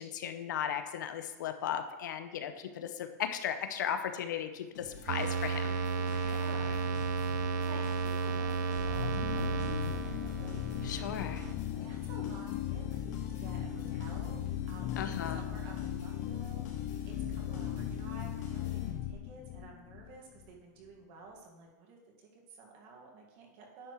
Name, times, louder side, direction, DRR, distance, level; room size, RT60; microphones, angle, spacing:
voice 1, 0.0-5.7 6.1-6.3 10.8-11.5 15.0-15.4, left 9 dB, 80° left, 8 dB, 0.8 m, -36 dB
sound 1, 4.7-19.3, left 2 dB, 60° left, 2.4 m, -48 dB
sound 2, 5.1-11.5, right 4 dB, 70° right, 0.7 m, -33 dB
voice 2, 6.2-7.1 7.6-10.6 11.8-14.4 14.7-15.0 15.3-23.9, right 4 dB, 45° right, -1 dB, 1.8 m, -52 dB
sound 3, 8.7-20.5, left 11 dB, 35° left, 0.4 m, -38 dB
10.0 x 7.0 x 3.1 m, 1.2 s
supercardioid pair, 165°, 10 cm